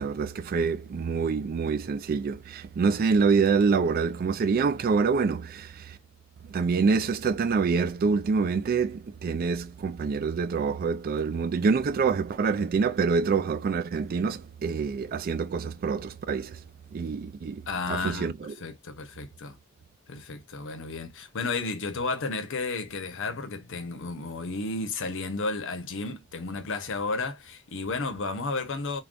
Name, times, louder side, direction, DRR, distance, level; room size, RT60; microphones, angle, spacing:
voice 1, 0.0-6.0 6.5-16.6 16.9-18.5, right 5 dB, 45° right, 0.3 m, -26 dB
voice 2, 17.7-19.6 20.1-29.0, left 3 dB, 60° left, 0.7 m, -33 dB
3.6 x 2.2 x 2.4 m
head